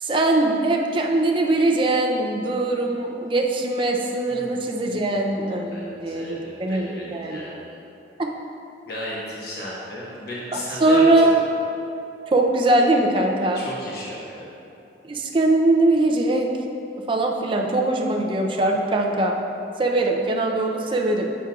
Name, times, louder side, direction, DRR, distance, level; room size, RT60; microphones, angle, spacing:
voice 1, 0.0-7.4 8.2-8.3 10.8-11.3 12.3-13.6 15.1-16.5 17.1-19.4 19.8-21.3, right 2 dB, 30° right, 1 dB, 0.5 m, -21 dB
voice 2, 4.3-5.3 5.7-7.5 8.9-11.3 13.5-14.5, equal, 60° left, -6 dB, 1.2 m, -35 dB
8.0 x 6.1 x 2.4 m, 2.7 s
head